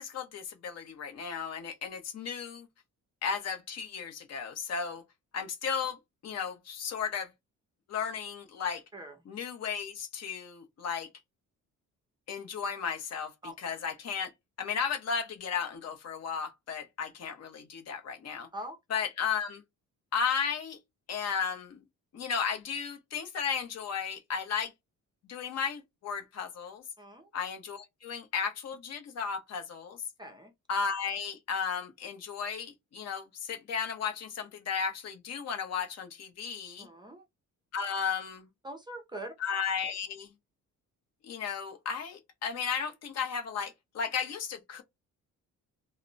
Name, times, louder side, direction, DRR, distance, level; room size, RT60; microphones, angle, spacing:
voice 1, 0.0-2.7 3.2-5.0 5.3-7.3 7.9-8.8 9.3-11.1 12.3-14.3 14.6-18.5 18.9-19.6 20.1-20.8 21.1-21.8 22.1-24.7 25.2-26.8 27.3-30.0 30.7-36.9 37.7-38.5 39.4-40.3 41.2-44.8, left 6 dB, 55° left, 0.7 m, -34 dB
voice 2, 27.0-27.3 30.2-30.5 36.8-37.2 38.6-39.3, right 1 dB, 15° right, 0.4 m, -42 dB
2.1 x 2.0 x 3.8 m
cardioid pair, 120°, 32 cm